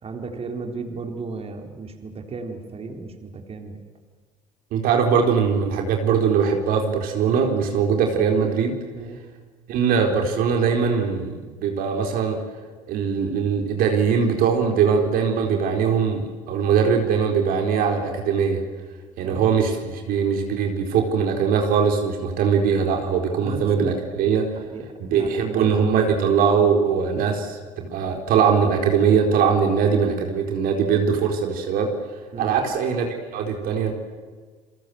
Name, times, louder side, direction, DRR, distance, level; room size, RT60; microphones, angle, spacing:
voice 1, 0.0-3.8 8.9-9.2 19.2-19.5 23.4-24.0 24.6-24.9 25.1-25.7 32.3-32.6, right 4 dB, 40° right, 4 dB, 4.3 m, -34 dB
voice 2, 4.7-8.8 9.7-12.4 12.9-18.6 19.2-24.5 25.0-31.9 32.4-33.1 33.3-33.9, right 6 dB, 60° right, 3 dB, 4.1 m, -21 dB
30.0 x 22.5 x 7.9 m, 1.4 s
hypercardioid pair, 65°, 16 cm